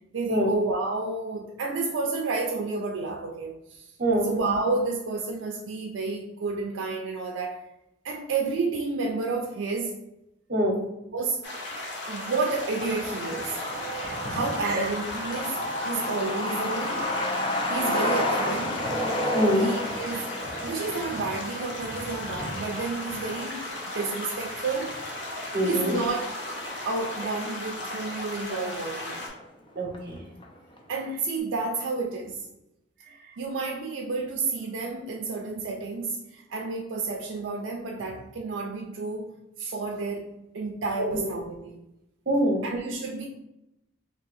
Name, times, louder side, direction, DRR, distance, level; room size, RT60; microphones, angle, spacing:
voice 1, 0.1-3.9 4.2-7.6 8.0-10.0 11.1-11.4 12.1-13.6 14.3-15.6 15.8-17.1 17.7-18.9 19.6-20.3 20.6-23.6 23.9-24.9 25.6-26.3 26.9-29.2 30.9-32.4 33.4-41.8 42.6-43.3, right 3 dB, 85° right, 1 dB, 0.4 m, -30 dB
voice 2, 4.0-4.3 10.5-10.8 14.0-14.2 14.6-14.9 19.3-19.7 25.5-26.0 29.8-30.2 41.0-41.3 42.3-42.7, equal, 55° right, 1 dB, 0.8 m, -25 dB
sound 1, 11.4-29.3, left 1 dB, 70° left, 0.9 m, -36 dB
Truck, 12.9-28.1 28.4-28.5 28.8-29.7 29.9-30.0 30.4-30.8, left 1 dB, 25° left, 0.5 m, -32 dB
2.8 x 2.7 x 4.0 m, 0.89 s
head